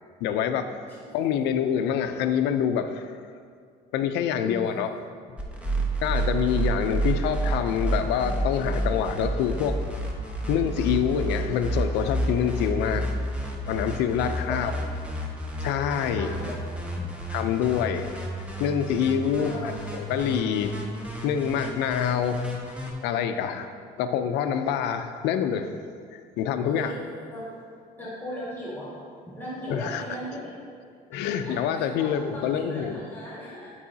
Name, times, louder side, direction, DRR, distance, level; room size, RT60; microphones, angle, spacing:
voice 1, 0.2-0.7 1.1-3.1 3.9-5.0 6.0-9.8 10.5-13.1 13.7-14.7 15.6-16.3 17.3-18.1 18.6-20.8 21.2-22.5 23.0-23.7 24.0-25.8 26.1-26.9 29.7-30.0 31.1-33.0, left 8 dB, 90° left, 8 dB, 0.5 m, -26 dB
voice 2, 4.3-4.7 5.7-5.8 14.2-14.8 16.1-16.5 16.9-17.1 19.4-19.8 26.6-27.0 27.3-27.5 28.0-28.9 29.3-30.5 31.4-33.7, equal, 10° left, -7 dB, 1.8 m, -37 dB
sound 1, 5.4-22.9, right 1 dB, 5° right, 1.0 m, -30 dB
11.0 x 4.7 x 2.8 m, 2.2 s
cardioid pair, 110°, 17 cm